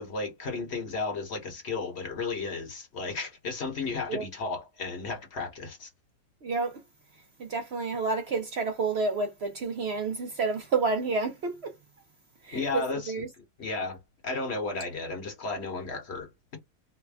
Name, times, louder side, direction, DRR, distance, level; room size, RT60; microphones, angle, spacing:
voice 1, 0.0-5.9 12.5-13.1 13.6-16.6, left 3 dB, 50° left, 1.3 m, -34 dB
voice 2, 6.4-6.8 7.4-11.7 12.4-13.3, right 4 dB, 55° right, 0.7 m, -29 dB
3.3 x 2.2 x 3.4 m
omnidirectional pair, 1.6 m